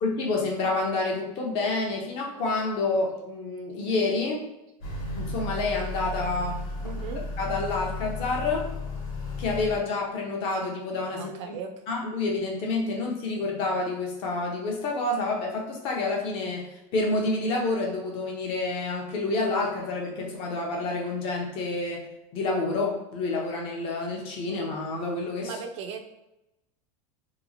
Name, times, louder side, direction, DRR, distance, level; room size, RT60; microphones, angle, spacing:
voice 1, 0.0-4.4 5.2-6.6 7.4-8.7 9.4-11.6 11.9-22.1 22.3-25.5, left 3 dB, 30° left, 0 dB, 0.6 m, -28 dB
Motor vehicle (road) / Accelerating revving vroom, 4.8-9.8, left 2 dB, 85° left, 1.1 m, -34 dB
voice 2, 6.8-7.2 11.2-12.0 25.4-26.0, right 6 dB, 55° right, 5 dB, 0.4 m, -37 dB
2.9 x 2.8 x 2.7 m, 0.92 s
supercardioid pair, 180°, 18 cm